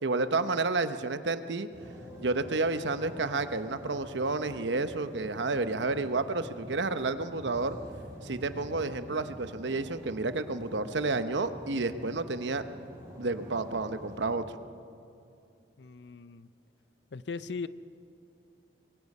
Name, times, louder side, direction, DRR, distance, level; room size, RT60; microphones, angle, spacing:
voice 1, 0.0-1.7 2.2-7.8 8.2-12.6 13.2-14.4, right 3 dB, 85° right, 10 dB, 0.9 m, -30 dB
sound 1, 1.7-14.4, equal, 20° right, 6.2 m, -47 dB
voice 2, 15.8-16.5 17.1-17.7, left 4 dB, 75° left, 15 dB, 0.6 m, -38 dB
24.5 x 22.0 x 5.5 m, 2.6 s
head